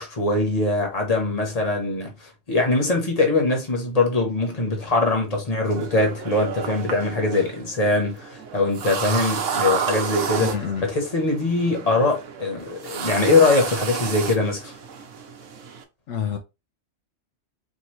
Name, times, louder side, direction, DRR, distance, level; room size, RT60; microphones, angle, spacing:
voice 1, 0.0-10.5 10.8-14.7, left 2 dB, 35° left, 1.3 m, -22 dB
sound 1, 5.7-15.8, right 7 dB, 85° right, 1.1 m, -31 dB
voice 2, 10.4-10.9 16.1-16.4, left 7 dB, 75° left, 1.0 m, -27 dB
4.6 x 2.8 x 3.0 m
omnidirectional pair, 1.2 m